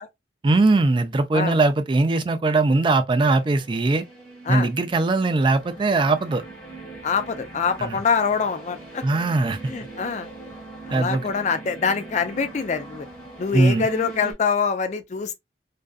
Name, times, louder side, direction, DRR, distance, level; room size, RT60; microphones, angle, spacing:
voice 1, 0.4-4.0 4.5-6.4 7.8-8.0 9.0-9.7 10.9-11.2 13.5-13.9, right 3 dB, 30° right, 0.3 m, -20 dB
sound 1, 3.3-14.3, right 3 dB, 5° left, 1.3 m, -41 dB
voice 2, 7.0-9.0 9.7-10.3 10.9-13.1 13.4-15.3, left 5 dB, 40° left, 0.4 m, -25 dB
2.4 x 2.2 x 2.3 m
head